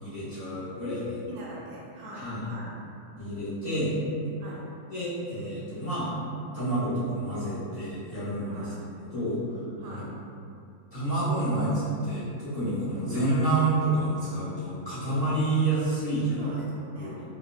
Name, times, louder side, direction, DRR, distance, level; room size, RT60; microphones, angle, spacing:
voice 1, 0.0-1.2 2.1-2.4 3.2-4.0 4.9-6.1 6.5-8.6 9.1-9.4 9.9-10.1 10.9-16.4 17.0-17.3, right 2 dB, 35° left, -12 dB, 0.8 m, -28 dB
voice 2, 1.3-2.7 4.4-4.7 8.4-8.8 9.8-10.1 16.4-17.3, equal, 75° right, -6 dB, 1.0 m, -43 dB
3.9 x 2.1 x 2.2 m, 2.5 s
omnidirectional pair, 1.6 m